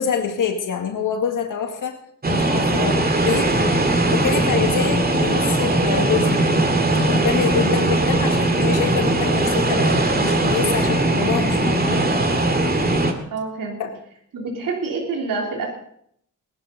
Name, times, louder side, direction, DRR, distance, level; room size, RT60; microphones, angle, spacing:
voice 1, 0.0-2.0 2.3-6.6 7.1-12.1 13.8-14.0, left 6 dB, 75° left, 4 dB, 2.0 m, -26 dB
sound 1, 2.2-13.1, right 2 dB, 30° right, 2.1 m, -19 dB
voice 2, 2.7-3.0 13.3-13.8 14.3-15.8, right 4 dB, 85° right, 0 dB, 3.6 m, -27 dB
20.5 x 12.5 x 4.0 m, 0.66 s
cardioid pair, 105°, 32 cm